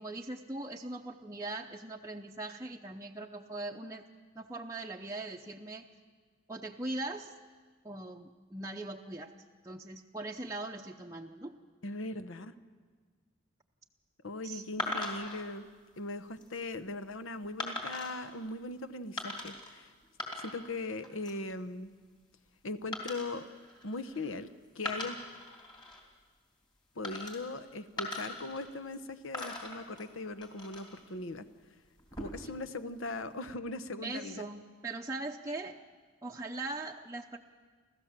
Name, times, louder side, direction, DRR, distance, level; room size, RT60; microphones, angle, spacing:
voice 1, 0.0-4.1 4.3-5.9 6.5-7.3 7.8-9.3 9.6-11.5 14.4-14.7 34.0-35.8 36.2-37.4, right 2 dB, 15° right, 0 dB, 0.6 m, -40 dB
voice 2, 11.8-12.5 14.2-15.7 16.0-19.9 20.4-21.9 22.6-23.5 23.8-24.5 24.7-25.2 27.0-31.5 32.2-34.4, left 2 dB, 80° left, 12 dB, 0.9 m, -39 dB
sound 1, 14.8-15.4 16.1-16.5 17.6-18.2 19.2-19.7 20.0-20.8 21.0-21.5 22.9-24.4 24.8-26.0 27.0-27.6 28.0-29.0 29.3-31.0 32.0-32.6, left 1 dB, 25° left, 3.2 m, -40 dB
29.5 x 14.0 x 7.4 m, 1.5 s
head